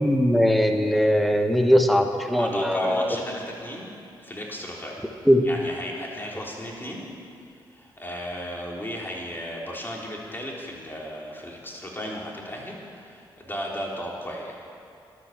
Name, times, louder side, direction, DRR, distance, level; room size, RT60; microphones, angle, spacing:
voice 1, 0.0-3.1 5.2-5.5, equal, ahead, 5 dB, 1.3 m, -20 dB
voice 2, 2.4-3.9 4.2-5.0 5.4-7.0 7.7-14.6, equal, 20° left, -2 dB, 3.4 m, -35 dB
12.5 x 11.0 x 7.3 m, 2.6 s
cardioid pair, 65°, 9 cm